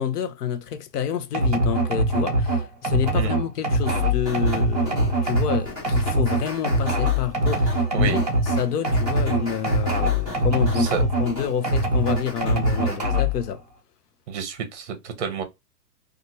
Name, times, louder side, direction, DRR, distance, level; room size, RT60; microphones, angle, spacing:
voice 1, 0.0-13.6, left 8 dB, 65° left, 0.7 m, -28 dB
sound 1, 1.3-11.3 11.6-13.4, right 1 dB, 30° right, 0.4 m, -22 dB
sound 2, 3.9-13.0, left 2 dB, 5° left, 0.8 m, -37 dB
voice 2, 14.3-15.4, right 6 dB, 45° right, 0.8 m, -29 dB
2.7 x 2.5 x 2.7 m
hypercardioid pair, 170°, 50 cm